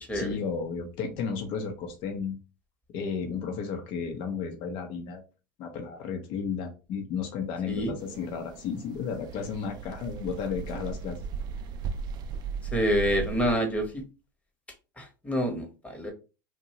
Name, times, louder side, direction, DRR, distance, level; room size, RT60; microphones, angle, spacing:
voice 1, 0.1-2.4 2.9-5.2 5.6-11.2, left 6 dB, 55° left, 4 dB, 0.7 m, -33 dB
sound 1, 8.0-13.5, right 5 dB, 45° right, 0.4 m, -37 dB
voice 2, 12.7-14.0 15.0-16.1, equal, 10° left, 3 dB, 0.9 m, -27 dB
2.6 x 2.2 x 2.8 m, 0.31 s
hypercardioid pair, 95°, 10 cm